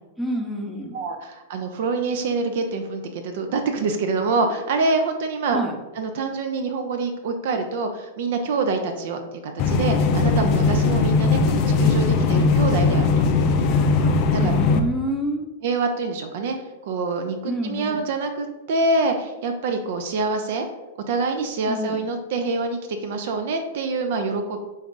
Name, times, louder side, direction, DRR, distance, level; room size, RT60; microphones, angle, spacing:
voice 1, 0.2-1.0 5.5-5.7 14.4-15.4 17.5-18.1 21.7-22.0, equal, 5° right, 0 dB, 0.7 m, -28 dB
voice 2, 0.9-5.6 6.0-9.2 9.5-13.3 13.6-13.8 14.3-14.5 15.6-16.5 16.9-20.6 21.1-24.6, right 3 dB, 60° right, 5 dB, 0.4 m, -25 dB
sound 1, 9.6-14.8, left 4 dB, 40° left, 0.4 m, -19 dB
4.0 x 2.3 x 3.6 m, 1.1 s
hypercardioid pair, 105°, 0 cm